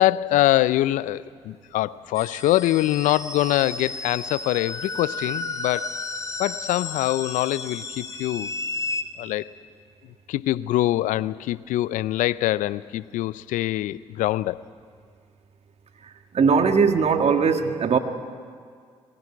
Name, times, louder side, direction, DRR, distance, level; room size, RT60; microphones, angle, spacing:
voice 1, 0.0-5.9 6.4-8.5 9.2-9.5 10.3-14.6, left 15 dB, 70° left, 18 dB, 0.5 m, -24 dB
sound 1, 2.1-9.0, left 3 dB, 25° left, 2.5 m, -33 dB
voice 2, 16.3-18.0, right 5 dB, 50° right, 7 dB, 1.7 m, -19 dB
22.0 x 16.5 x 9.6 m, 2.1 s
hypercardioid pair, 45°, 14 cm